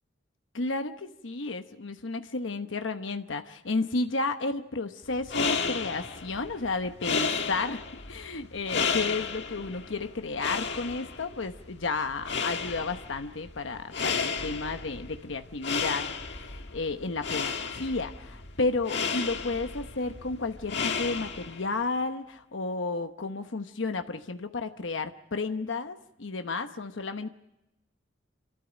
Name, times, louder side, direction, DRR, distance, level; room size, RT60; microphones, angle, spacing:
voice 1, 0.5-7.8 8.1-27.3, left 3 dB, 80° left, 7 dB, 1.0 m, -32 dB
sound 1, 5.1-21.7, left 5 dB, 60° left, 1.7 m, -33 dB
27.5 x 13.5 x 9.0 m, 0.92 s
head